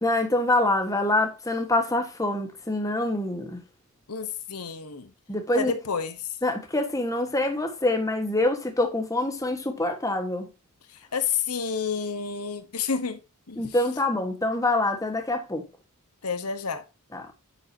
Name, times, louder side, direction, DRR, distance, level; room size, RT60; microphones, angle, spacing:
voice 1, 0.0-3.6 5.3-5.7 6.4-10.5 13.6-15.6 17.1-17.3, left 2 dB, 15° left, 1.4 m, -25 dB
voice 2, 4.1-5.1 5.5-6.3 10.9-13.2 13.5-13.6 16.2-16.8, left 6 dB, 80° left, 1.1 m, -30 dB
9.7 x 6.4 x 2.8 m
head